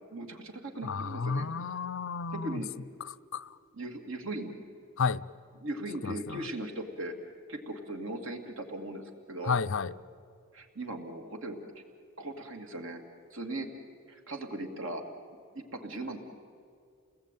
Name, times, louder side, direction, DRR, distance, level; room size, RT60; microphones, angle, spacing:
voice 1, 0.1-1.4 2.3-2.7 3.7-4.5 5.6-7.1 7.5-9.0 9.3-9.6 10.5-11.8 12.2-13.0 13.3-13.7 14.1-15.0 15.5-16.2, right 1 dB, 65° right, 2.7 m, -38 dB
voice 2, 0.8-2.6 3.3-3.6 5.0-5.2 6.0-6.4 9.5-9.9, left 5 dB, 60° left, 0.6 m, -32 dB
30.0 x 20.0 x 9.2 m
head